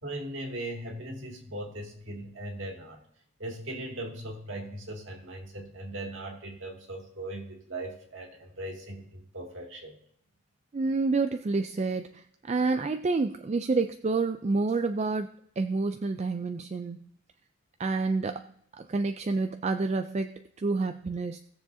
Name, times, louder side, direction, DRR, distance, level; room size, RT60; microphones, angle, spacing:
voice 1, 0.0-3.0 3.4-10.0, right 1 dB, 60° right, 1 dB, 2.2 m, -39 dB
voice 2, 10.7-15.3 15.6-17.0 17.8-18.5 18.8-21.4, right 3 dB, 30° right, 7 dB, 0.3 m, -28 dB
18.5 x 7.1 x 2.7 m, 0.73 s
head